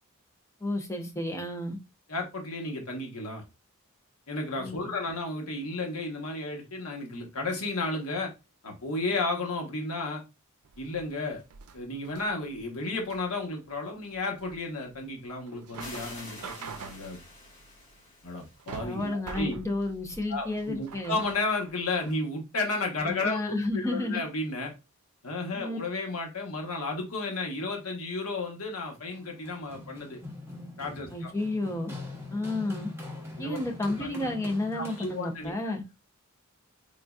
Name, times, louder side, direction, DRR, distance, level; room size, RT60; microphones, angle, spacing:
voice 1, 0.6-1.8 4.6-4.9 18.8-21.2 23.0-24.2 25.6-25.8 31.1-31.9 32.3-32.9 33.4-35.8, left 2 dB, 15° left, 0.7 m, -31 dB
voice 2, 2.1-3.4 4.3-8.3 8.6-10.2 10.8-11.4 11.7-17.2 18.2-19.6 20.3-24.7 25.2-30.2 30.8-31.3 33.4-33.6 34.0-34.1 34.7-35.7, left 2 dB, 85° left, 1.2 m, -33 dB
sound 1, 10.6-22.2, right 5 dB, 85° right, 0.5 m, -46 dB
sound 2, 15.8-19.1, left 2 dB, 35° left, 1.6 m, -47 dB
Run, 29.1-35.5, left 2 dB, 10° right, 1.0 m, -42 dB
3.9 x 3.7 x 2.4 m
head